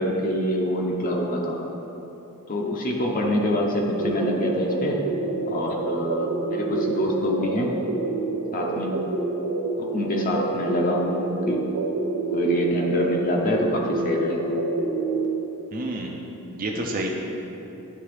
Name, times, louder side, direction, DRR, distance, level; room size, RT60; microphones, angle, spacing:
voice 1, 0.0-1.6 2.5-5.0 5.5-7.7 8.5-8.9 9.8-11.6 12.3-14.5, left 1 dB, 40° left, -1 dB, 0.6 m, -25 dB
sound 1, 4.0-15.3, right 3 dB, 85° right, 0.7 m, -28 dB
voice 2, 15.7-16.2 16.5-17.1, right 2 dB, 40° right, 0 dB, 0.5 m, -29 dB
10.0 x 3.4 x 3.3 m, 3.0 s
head